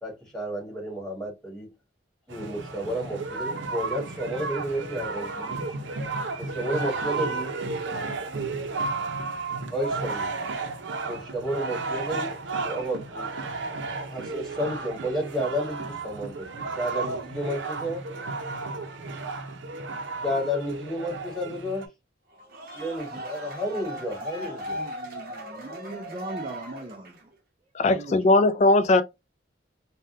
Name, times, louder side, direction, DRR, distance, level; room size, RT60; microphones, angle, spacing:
voice 1, 0.0-1.7 2.3-5.7 6.4-7.6 9.7-10.3 11.0-12.3 12.6-13.3 13.7-16.4 16.7-18.0 20.2-21.9 22.7-24.8, equal, 5° left, 1.4 m, -31 dB
sound 1, 2.3-21.9, right 3 dB, 85° right, 0.6 m, -33 dB
sound 2, 22.3-27.3, equal, 50° right, 0.9 m, -38 dB
voice 2, 24.7-27.3 27.9-28.3, right 1 dB, 30° right, 0.4 m, -39 dB
voice 3, 27.7-29.0, left 2 dB, 40° left, 0.3 m, -19 dB
3.4 x 2.2 x 2.6 m
head